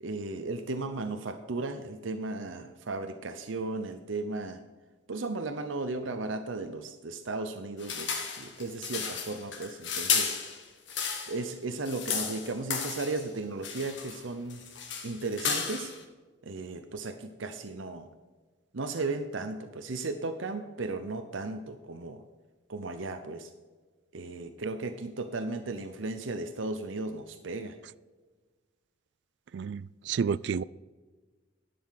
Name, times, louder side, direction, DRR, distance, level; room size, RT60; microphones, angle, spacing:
voice 1, 0.0-4.6 5.1-10.6 11.3-14.6 15.0-15.9 16.4-18.1 18.7-22.2 22.7-23.5 24.1-27.8, right 3 dB, 85° right, 7 dB, 0.8 m, -35 dB
sound 1, 7.8-11.4 11.7-13.3 13.6-14.2 14.5-16.0, left 6 dB, 70° left, 1.6 m, -33 dB
voice 2, 29.5-30.6, right 6 dB, 65° right, 21 dB, 0.3 m, -30 dB
11.0 x 6.9 x 5.7 m, 1.4 s
head